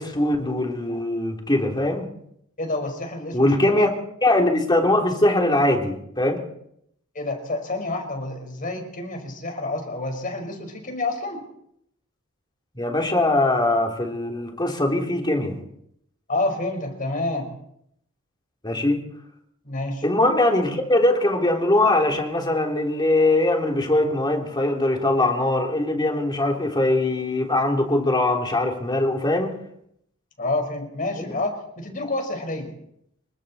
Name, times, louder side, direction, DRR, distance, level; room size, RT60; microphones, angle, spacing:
voice 1, 0.0-2.1 3.3-3.9 4.2-6.4 12.8-15.6 18.6-19.0 20.0-29.5 31.2-31.3, left 1 dB, 20° left, 1 dB, 3.5 m, -21 dB
voice 2, 2.6-3.9 7.2-11.4 16.3-17.5 19.7-20.1 30.4-32.7, left 2 dB, 40° left, 4 dB, 5.2 m, -28 dB
28.0 x 23.5 x 4.3 m, 0.74 s
head